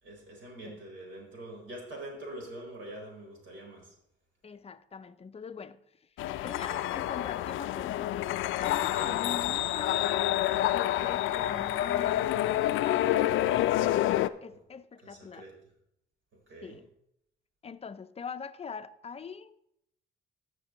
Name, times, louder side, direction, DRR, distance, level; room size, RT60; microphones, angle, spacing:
voice 1, 0.0-3.9 8.8-9.2 15.0-15.6 16.3-16.8, right 1 dB, 70° right, 4.2 m, -44 dB
voice 2, 4.4-5.8 6.4-10.3 10.7-13.6 14.4-15.5 16.6-16.9 17.6-19.6, left 5 dB, 30° left, 0.5 m, -42 dB
sound 1, 6.2-14.3, left 13 dB, 80° left, 0.4 m, -28 dB
16.0 x 6.0 x 3.1 m
cardioid pair, 90°, 20 cm